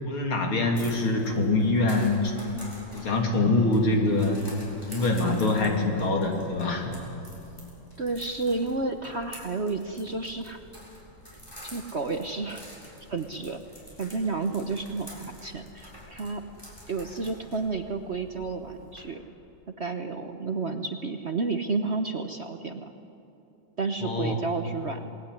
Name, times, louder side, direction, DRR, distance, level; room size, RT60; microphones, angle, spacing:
voice 1, 0.0-2.3 2.9-4.4 4.9-6.9 24.0-24.4, left 2 dB, 85° left, 2 dB, 3.8 m, -24 dB
sound 1, 0.7-19.0, equal, 10° left, 6.9 m, -47 dB
voice 2, 8.0-10.6 11.6-12.7 13.1-13.6 14.0-16.4 16.9-19.2 19.8-22.9 23.8-25.2, right 3 dB, 45° right, 6 dB, 1.0 m, -31 dB
27.5 x 19.5 x 10.0 m, 2.9 s
omnidirectional pair, 2.2 m